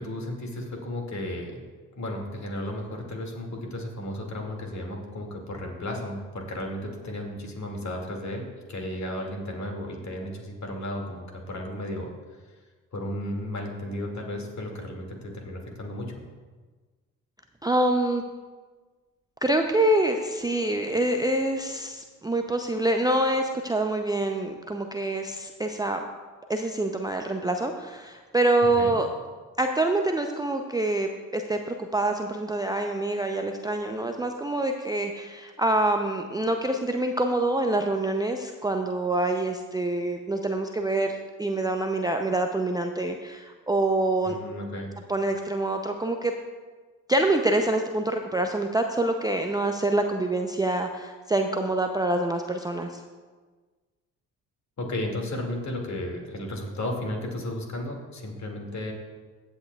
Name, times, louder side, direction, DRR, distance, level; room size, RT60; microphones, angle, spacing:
voice 1, 0.0-1.6 1.9-12.1 12.5-12.6 12.9-16.2 28.8-29.0 44.3-44.9 54.8-58.9, left 1 dB, 40° left, 1 dB, 2.3 m, -34 dB
voice 2, 17.6-18.2 19.4-26.0 26.5-29.1 29.6-44.4 45.1-46.3 47.1-53.0, right 2 dB, 10° right, 4 dB, 0.6 m, -26 dB
15.5 x 8.2 x 2.4 m, 1.4 s
hypercardioid pair, 45°, 44 cm